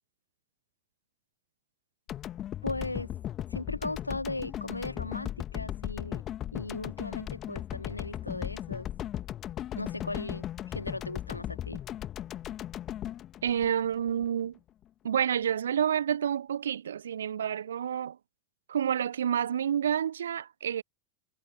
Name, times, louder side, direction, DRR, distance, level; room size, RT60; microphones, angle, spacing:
sound 1, 2.1-14.3, left 12 dB, 30° left, 1.9 m, -37 dB
voice 1, 2.6-3.1 3.5-6.2 6.5-8.9 9.8-11.8, left 2 dB, 85° left, 2.1 m, -37 dB
voice 2, 13.4-14.6 15.0-18.2 18.7-20.8, right 9 dB, 70° right, 0.6 m, -29 dB
figure-of-eight pair, 90°, 0 cm